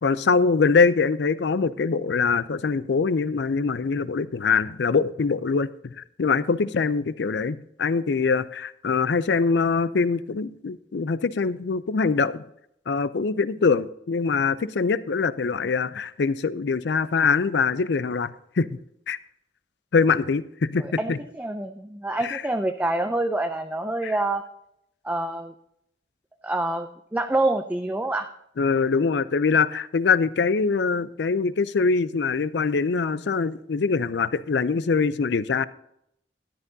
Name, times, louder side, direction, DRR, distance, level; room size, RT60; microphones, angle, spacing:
voice 1, 0.0-12.4 12.9-18.7 19.1-19.2 19.9-21.2 22.2-22.4 24.0-24.1 28.6-35.7, left 4 dB, 65° left, 16 dB, 0.5 m, -23 dB
voice 2, 20.8-24.4 25.0-25.5 26.4-28.3, right 2 dB, 10° right, 6 dB, 0.4 m, -27 dB
13.5 x 11.0 x 2.7 m, 0.75 s
head